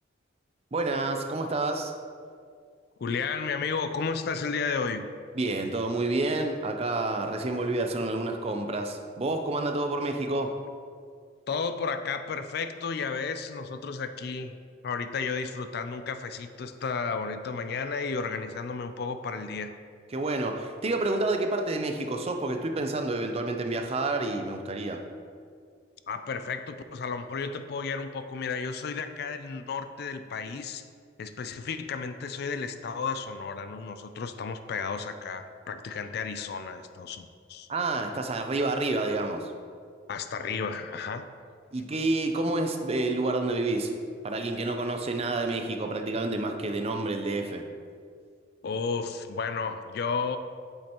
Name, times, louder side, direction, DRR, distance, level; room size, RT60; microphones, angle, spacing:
voice 1, 0.7-1.9 5.4-10.6 20.1-25.0 37.7-39.5 41.7-43.9 44.2-47.6, right 2 dB, 30° right, 5 dB, 0.5 m, -29 dB
voice 2, 3.0-5.0 11.5-14.5 14.8-19.7 26.1-30.8 31.2-37.7 40.1-41.3 48.6-50.4, left 5 dB, 55° left, 9 dB, 0.4 m, -33 dB
8.5 x 5.4 x 3.0 m, 2.1 s
head